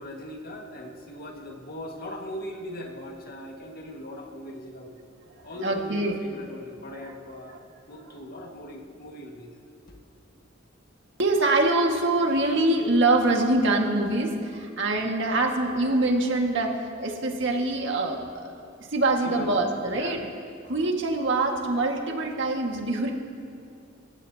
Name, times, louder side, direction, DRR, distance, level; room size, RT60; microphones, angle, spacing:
voice 1, 0.0-4.9 5.4-7.6 7.9-9.6 9.9-10.0 19.2-20.3, equal, 50° left, 1 dB, 1.8 m, -40 dB
voice 2, 5.4-6.2 7.0-7.1 11.2-18.4 18.9-20.2 20.7-23.1, right 2 dB, 65° right, 1 dB, 1.9 m, -24 dB
27.5 x 15.5 x 2.9 m, 2.4 s
head